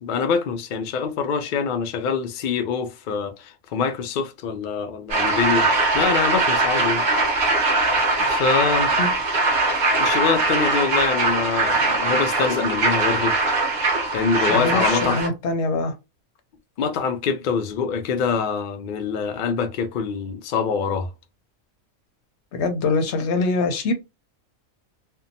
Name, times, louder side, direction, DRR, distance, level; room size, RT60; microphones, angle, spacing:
voice 1, 0.0-5.7 5.9-7.0 8.2-8.9 10.0-13.3 14.1-15.2 16.8-21.1, left 6 dB, 85° left, 0.4 m, -24 dB
sound 1, 5.1-15.3, right 3 dB, 40° right, 0.8 m, -21 dB
voice 2, 14.4-15.9 22.5-23.9, left 3 dB, 65° left, 0.8 m, -23 dB
2.7 x 2.1 x 2.6 m
omnidirectional pair, 1.4 m